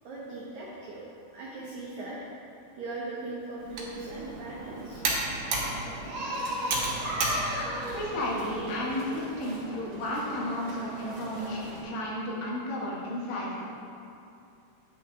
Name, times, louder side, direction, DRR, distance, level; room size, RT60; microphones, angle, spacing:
voice 1, 0.0-1.1 1.3-2.2 2.8-5.1, right 2 dB, 85° right, -5 dB, 1.6 m, -39 dB
Computer keyboard, 3.6-8.7, right 3 dB, 65° right, 2.0 m, -34 dB
sound 1, 4.1-11.8, equal, 40° right, 2.6 m, -37 dB
voice 2, 7.9-13.6, left 1 dB, 80° left, -4 dB, 3.5 m, -33 dB
10.0 x 8.9 x 2.7 m, 2.6 s
omnidirectional pair, 4.8 m